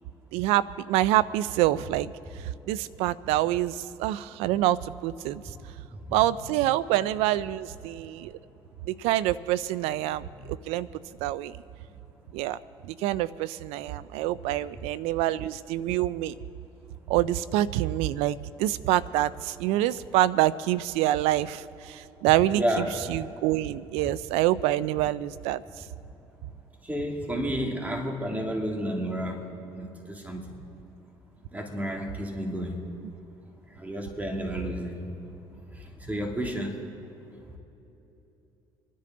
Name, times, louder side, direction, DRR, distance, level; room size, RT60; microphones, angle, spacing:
voice 1, 0.3-2.1 2.4-5.4 6.1-8.3 8.9-10.9 11.2-11.6 12.3-12.6 12.9-16.3 17.1-25.6, right 14 dB, 85° right, 18 dB, 0.4 m, -26 dB
voice 2, 22.5-23.0 26.9-29.4 29.7-30.4 31.5-32.9 33.8-35.0 36.1-36.7, equal, 15° right, 1 dB, 2.8 m, -31 dB
26.0 x 10.0 x 3.9 m, 3.0 s
supercardioid pair, 75°, 10 cm